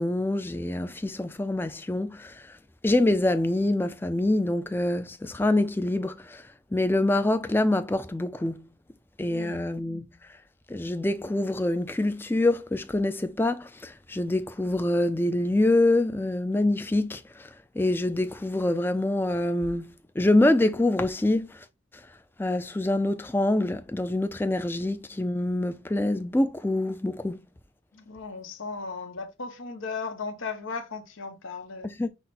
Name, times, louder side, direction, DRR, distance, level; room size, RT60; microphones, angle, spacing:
voice 1, 0.0-2.4 2.8-6.4 6.7-8.7 9.2-10.0 10.7-17.5 17.8-21.6 22.4-27.4 32.0-32.1, left 1 dB, 10° left, 0.3 m, -25 dB
voice 2, 9.3-9.8 27.9-32.0, left 4 dB, 90° left, 0.9 m, -36 dB
5.9 x 2.1 x 4.0 m
head